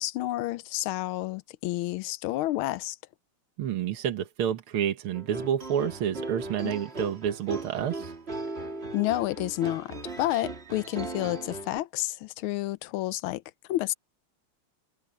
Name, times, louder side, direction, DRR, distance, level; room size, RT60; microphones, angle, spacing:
voice 1, 0.0-3.0 6.6-6.7 8.9-13.4 13.7-13.9, left 16 dB, 80° left, 1.4 m, -30 dB
voice 2, 3.6-8.1, right 9 dB, 75° right, 2.1 m, -29 dB
sound 1, 5.1-11.8, right 2 dB, 30° right, 2.8 m, -38 dB
omnidirectional pair, 2.4 m